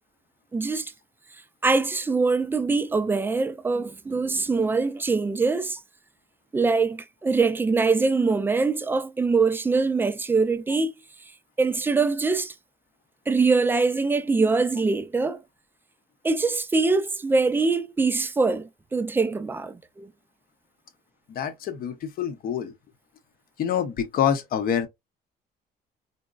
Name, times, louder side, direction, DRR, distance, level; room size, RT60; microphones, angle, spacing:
voice 1, 0.5-0.9 1.6-5.8 6.5-10.9 11.6-12.5 13.3-15.4 16.2-20.1, right 4 dB, 15° right, 0.3 m, -23 dB
voice 2, 21.3-22.7 23.6-24.9, left 8 dB, 60° left, 0.7 m, -26 dB
3.9 x 2.2 x 2.3 m
cardioid pair, 110°, 17 cm